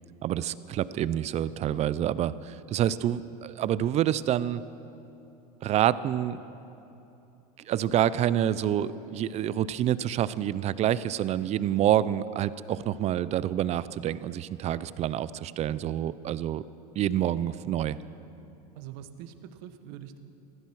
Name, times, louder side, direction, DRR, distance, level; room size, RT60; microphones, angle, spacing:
voice 1, 0.2-4.6 5.6-6.4 7.6-16.6 17.0-18.0, right 11 dB, 35° right, 17 dB, 0.5 m, -27 dB
voice 2, 18.7-20.2, right 10 dB, 65° right, 9 dB, 1.1 m, -44 dB
16.0 x 14.0 x 6.2 m, 2.9 s
supercardioid pair, 110°, 20 cm